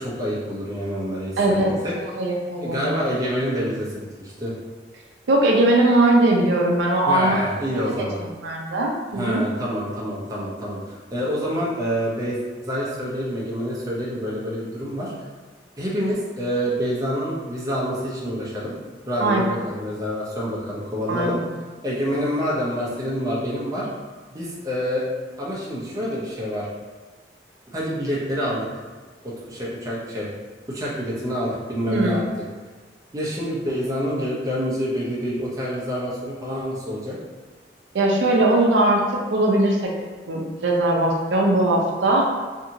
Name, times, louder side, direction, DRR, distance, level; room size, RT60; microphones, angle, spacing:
voice 1, 0.0-1.9 2.6-4.5 7.1-8.2 9.1-15.1 15.8-18.8 19.1-21.4 21.8-23.9 24.3-25.0 25.4-26.7 27.7-28.7 29.2-30.3 30.7-32.2 33.1-37.2, equal, 20° right, -6 dB, 0.6 m, -27 dB
voice 2, 1.4-1.7 2.1-3.0 5.3-7.4 8.0-9.4 19.2-19.4 21.1-21.4 31.9-32.2 37.9-39.8 40.3-42.3, right 2 dB, 85° right, -1 dB, 0.5 m, -20 dB
2.8 x 2.6 x 2.6 m, 1.4 s
head